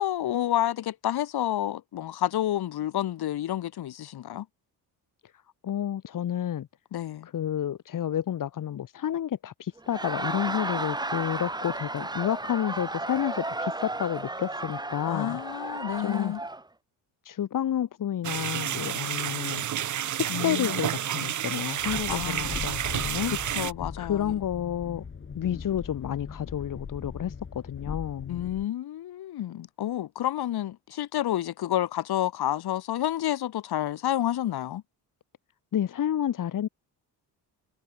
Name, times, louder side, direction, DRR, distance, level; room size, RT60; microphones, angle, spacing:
voice 1, 0.0-4.5 6.9-7.3 15.1-16.4 20.3-20.8 22.1-22.6 23.5-24.4 28.3-34.8, left 12 dB, 75° left, 5.2 m, -29 dB
voice 2, 5.6-6.7 7.2-15.4 16.0-16.3 17.2-19.6 20.1-23.3 24.0-25.0 25.3-28.4 35.7-36.7, left 10 dB, 55° left, 2.3 m, -30 dB
Laughter, 9.8-16.6, right 2 dB, 10° right, 3.4 m, -33 dB
sound 1, 18.2-23.7, right 11 dB, 50° right, 1.1 m, -30 dB
Train, 21.8-28.6, left 5 dB, 30° left, 4.4 m, -39 dB
cardioid pair, 140°, 39 cm